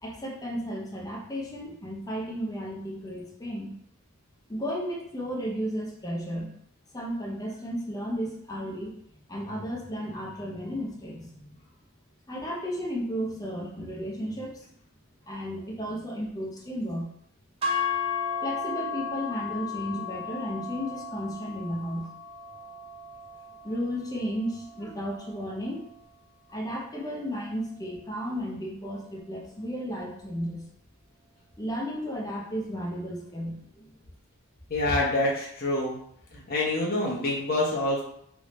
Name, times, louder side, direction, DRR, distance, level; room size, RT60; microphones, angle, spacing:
voice 1, 0.0-3.8 4.5-6.5 6.9-11.6 12.3-14.7 15.3-17.1 18.4-22.1 23.6-25.9 26.5-30.7 31.6-33.9, equal, 15° left, -2 dB, 0.6 m, -34 dB
sound 1, 17.6-25.9, left 5 dB, 25° right, 0.7 m, -35 dB
voice 2, 34.7-36.0 36.3-38.0, left 2 dB, 45° left, -4 dB, 1.0 m, -26 dB
3.2 x 2.6 x 3.1 m, 0.70 s
head